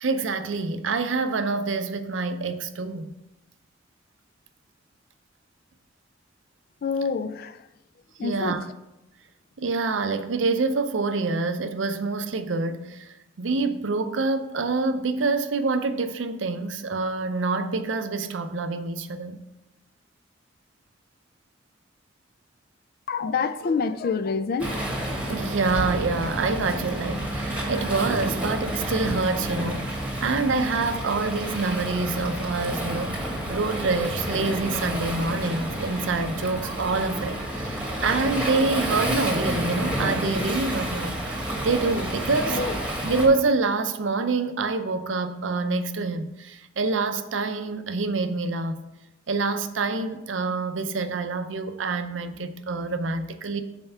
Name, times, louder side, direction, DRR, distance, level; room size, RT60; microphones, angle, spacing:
voice 1, 0.0-3.1 8.2-8.6 9.6-19.4 25.3-33.2 33.5-41.3 41.6-42.6 43.0-48.8 49.3-53.6, right 3 dB, 80° right, 0.6 m, -26 dB
voice 2, 6.8-7.7 8.2-8.6 23.1-24.8 42.5-42.8, left 5 dB, 55° left, 0.4 m, -27 dB
Waves surf, 24.6-43.3, right 1 dB, 5° right, 1.3 m, -30 dB
5.6 x 4.4 x 5.6 m
head